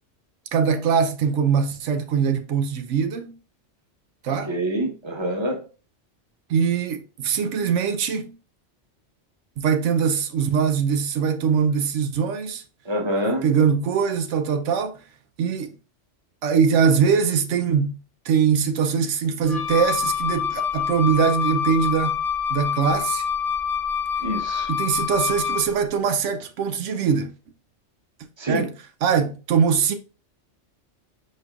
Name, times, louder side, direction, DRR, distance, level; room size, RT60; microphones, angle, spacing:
voice 1, 0.5-3.4 4.2-4.5 6.5-8.3 9.6-12.6 13.4-15.0 15.4-15.8 16.4-18.0 18.2-22.2 22.5-23.3 24.7-27.3 28.5-28.7 29.0-29.9, right 6 dB, 85° right, 0.9 m, -22 dB
voice 2, 4.3-5.6 12.8-13.4 24.2-24.7 28.4-28.7, right 1 dB, 25° right, 1.0 m, -26 dB
Wind instrument woodwind instrument, 19.4-25.8, left 7 dB, 40° left, 0.8 m, -26 dB
4.6 x 4.5 x 2.3 m
omnidirectional pair, 1.2 m